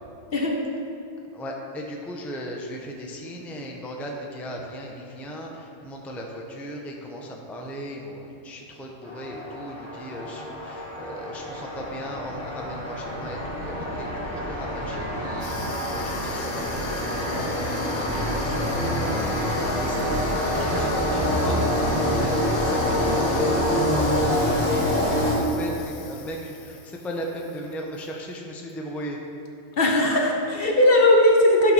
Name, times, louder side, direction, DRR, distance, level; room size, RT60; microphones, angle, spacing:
voice 1, 0.3-0.6 29.8-31.7, left 1 dB, 50° left, 1 dB, 1.0 m, -18 dB
voice 2, 1.3-21.7 22.1-29.2, equal, ahead, 0 dB, 0.6 m, -37 dB
sound 1, 9.0-25.8, equal, 20° right, 1.8 m, -26 dB
Water tap faucet / Sink (filling or washing), 15.4-28.1 28.4-28.7 29.5-29.6 29.7-30.6, left 5 dB, 80° left, 1.2 m, -41 dB
11.0 x 4.6 x 5.5 m, 2.8 s
omnidirectional pair, 1.4 m